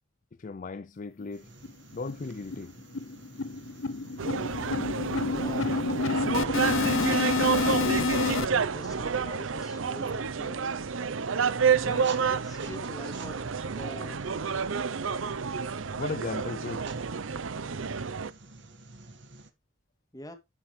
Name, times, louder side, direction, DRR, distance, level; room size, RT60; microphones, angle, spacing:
voice 1, 0.4-1.5 1.9-2.7 16.0-16.8, left 4 dB, 40° left, 0.4 m, -36 dB
sound 1, 1.2-1.3 1.6-1.7 2.1-2.3 2.5-8.5, left 4 dB, 75° left, 0.8 m, -28 dB
sound 2, 1.3-19.5, right 3 dB, 65° right, 1.7 m, -49 dB
sound 3, 4.2-18.3, right 6 dB, 80° right, 0.7 m, -29 dB
voice 2, 5.3-5.7 6.3-7.8 8.7-10.6 11.8-13.4 13.6-14.6 20.1-20.3, equal, 20° left, 2.5 m, -45 dB
12.5 x 7.6 x 3.3 m
head